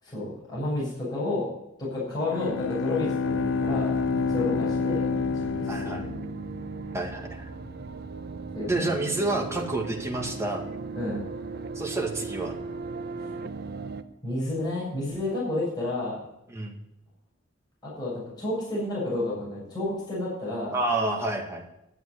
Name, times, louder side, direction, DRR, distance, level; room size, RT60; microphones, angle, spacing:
voice 1, 0.0-1.5 1.8-3.9 4.3-5.0 5.3-5.9 8.5-8.9 10.9-11.2 13.2-13.3 14.2-16.2 17.8-20.8, left 2 dB, 20° left, -8 dB, 7.2 m, -31 dB
Bowed string instrument, 2.2-6.9, left 5 dB, 65° left, 0.4 m, -28 dB
sound 1, 3.2-14.0, right 4 dB, 50° right, 0.8 m, -37 dB
voice 2, 5.7-6.1 6.9-7.5 8.7-10.6 11.8-12.6 16.5-16.8 20.7-21.7, right 2 dB, 15° right, 0 dB, 2.1 m, -29 dB
12.5 x 7.8 x 9.9 m, 0.85 s
head